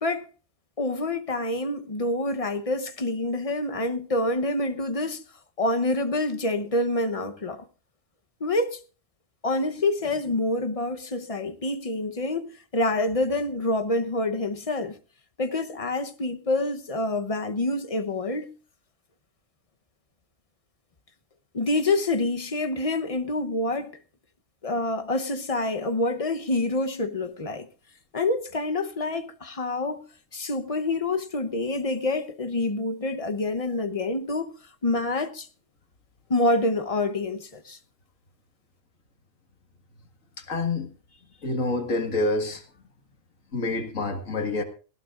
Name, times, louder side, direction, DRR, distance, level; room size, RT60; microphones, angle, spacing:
voice 1, 0.8-5.2 5.6-7.6 8.4-8.8 9.4-15.0 15.4-18.5 21.5-23.9 24.6-27.7 28.1-30.0 30.3-34.5 34.8-35.5 36.3-37.8, left 2 dB, 30° left, 0.9 m, -27 dB
voice 2, 40.4-40.9 41.4-42.6 43.5-44.6, left 2 dB, 85° left, 2.3 m, -27 dB
18.5 x 16.5 x 2.5 m
omnidirectional pair, 1.3 m